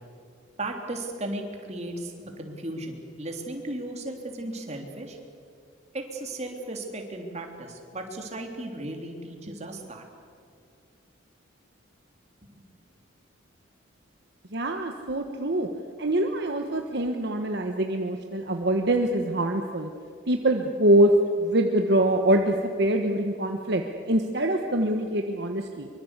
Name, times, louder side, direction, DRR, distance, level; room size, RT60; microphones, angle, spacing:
voice 1, 0.6-5.2 5.9-10.0, right 1 dB, 35° right, 3 dB, 3.2 m, -35 dB
voice 2, 14.5-15.7 16.0-19.9 20.3-21.1 21.4-25.9, right 1 dB, 55° right, 4 dB, 1.3 m, -24 dB
24.0 x 23.5 x 8.2 m, 2.2 s
head